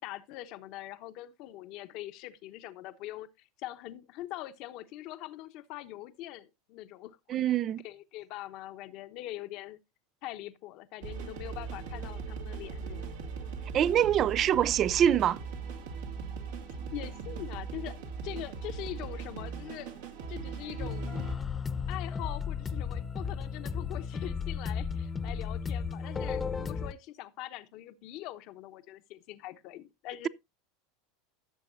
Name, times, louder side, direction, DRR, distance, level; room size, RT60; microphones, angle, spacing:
voice 1, 0.0-7.4 7.8-9.8 10.2-13.1 16.9-18.0 18.2-21.2 21.9-30.3, left 15 dB, 55° left, 1.0 m, -43 dB
voice 2, 7.3-7.8 13.7-15.4, right 10 dB, 40° right, 0.4 m, -25 dB
sound 1, 11.0-21.3, right 5 dB, 75° right, 2.2 m, -39 dB
sound 2, 20.8-26.9, left 6 dB, 20° left, 0.9 m, -34 dB
16.0 x 6.9 x 2.6 m
hypercardioid pair, 95°, 0 cm